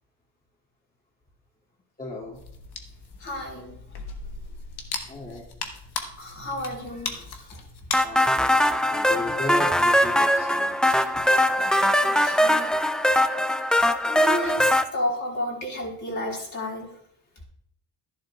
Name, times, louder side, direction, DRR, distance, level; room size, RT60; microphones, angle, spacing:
voice 1, 2.0-2.4 5.1-5.4 8.0-11.0, left 1 dB, 20° left, -5 dB, 2.5 m, -36 dB
sound 1, 2.3-8.0, left 5 dB, 65° left, 1.3 m, -37 dB
voice 2, 3.2-3.8 6.2-7.2 7.5-7.6 11.6-12.7 14.1-16.9, left 1 dB, 45° left, -2 dB, 3.6 m, -32 dB
sound 2, 7.9-14.8, equal, ahead, 0.4 m, -21 dB
11.5 x 10.5 x 2.4 m, 0.67 s
cardioid pair, 70°, 42 cm